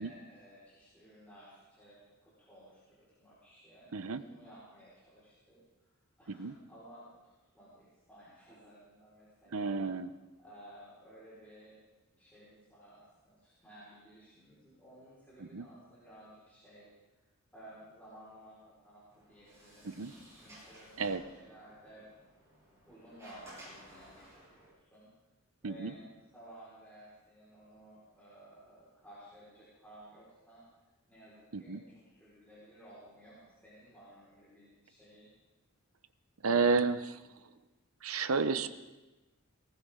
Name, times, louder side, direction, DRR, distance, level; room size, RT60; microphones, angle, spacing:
voice 1, 0.0-5.6 6.2-9.8 10.4-11.8 12.1-16.9 17.5-20.0 20.3-20.9 21.2-22.1 22.8-25.1 25.6-26.0 26.3-30.6 31.1-35.3, equal, 10° left, -10 dB, 4.9 m, -56 dB
voice 2, 9.5-10.1 15.5-15.7 19.8-20.1 21.0-21.2 25.6-25.9 31.5-31.8 36.4-37.2 38.0-38.7, right 4 dB, 75° right, 11 dB, 0.9 m, -31 dB
Sliding door, 19.1-24.7, equal, 15° right, 7.4 m, -56 dB
19.0 x 18.5 x 3.8 m, 1.1 s
head